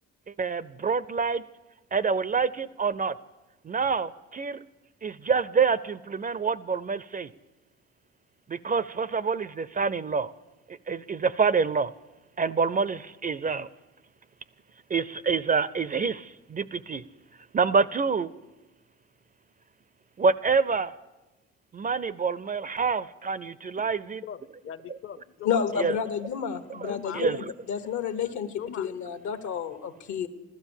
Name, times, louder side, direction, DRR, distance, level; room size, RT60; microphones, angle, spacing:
voice 1, 0.3-1.4 1.9-3.1 3.6-4.6 5.0-7.3 8.5-10.3 10.7-11.9 12.4-13.7 14.9-17.0 17.5-18.3 20.2-20.9 21.7-24.2 25.8-25.9 26.8-27.4, right 5 dB, 30° right, 18 dB, 0.4 m, -27 dB
voice 2, 24.2-25.6 26.9-27.3 28.5-28.9, left 9 dB, 45° left, 15 dB, 0.7 m, -40 dB
voice 3, 25.4-30.3, left 7 dB, 70° left, 10 dB, 1.3 m, -30 dB
15.5 x 12.5 x 7.2 m, 1.1 s
cardioid pair, 90°, 30 cm